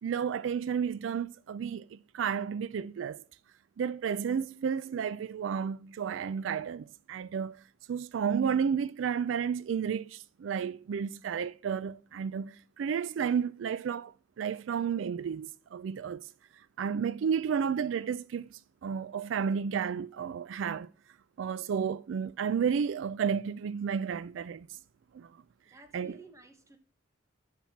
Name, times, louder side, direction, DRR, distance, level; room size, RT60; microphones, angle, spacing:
voice 1, 0.0-3.2 3.8-7.6 7.9-16.3 16.8-20.9 21.4-24.8 25.1-25.3 25.9-26.2, right 7 dB, 85° right, 0.3 m, -32 dB
voice 2, 25.6-26.8, right 1 dB, 15° right, 1.3 m, -54 dB
7.0 x 6.0 x 7.2 m
head